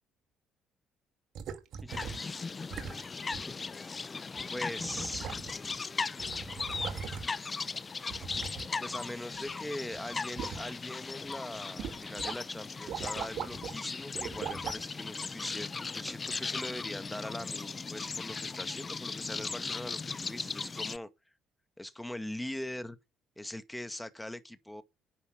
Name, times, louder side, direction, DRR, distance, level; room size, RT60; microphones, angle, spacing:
sound 1, 1.4-2.3 2.7-3.0 3.3-3.5 4.4-4.5 4.8-5.7 6.0-7.5 8.1-9.6 9.9-10.7 11.2-11.3 11.8-12.4 12.7-13.8 14.1-14.8 15.5-15.6, right 7 dB, 65° right, 2.6 m, -40 dB
voice 1, 1.8-2.3 4.5-5.4 8.3-8.5 8.8-21.1 21.8-23.0 23.4-24.8, left 1 dB, 5° left, 1.9 m, -41 dB
sound 2, 1.9-21.0, left 4 dB, 35° left, 0.8 m, -38 dB
10.0 x 9.7 x 6.6 m
supercardioid pair, 65°, 0 cm